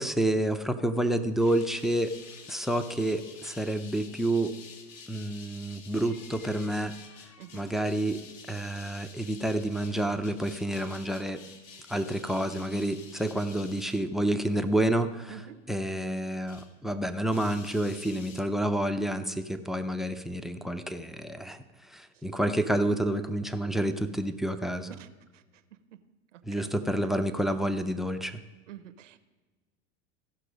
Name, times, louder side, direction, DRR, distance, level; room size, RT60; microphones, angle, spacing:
voice 1, 0.0-2.1 2.5-4.5 5.1-6.9 7.5-8.2 8.5-11.4 11.9-15.4 15.7-24.9 26.4-28.4, right 1 dB, ahead, 11 dB, 0.4 m, -29 dB
sound 1, 1.4-16.8 17.0-18.4, left 5 dB, 55° left, 1.5 m, -50 dB
voice 2, 7.4-7.7 15.3-15.6 22.1-22.2 25.0-25.1 25.3-25.4 26.3-26.6 28.7-29.2, right 11 dB, 85° right, 11 dB, 0.8 m, -47 dB
15.0 x 5.9 x 5.1 m, 1.3 s
hypercardioid pair, 105°, 36 cm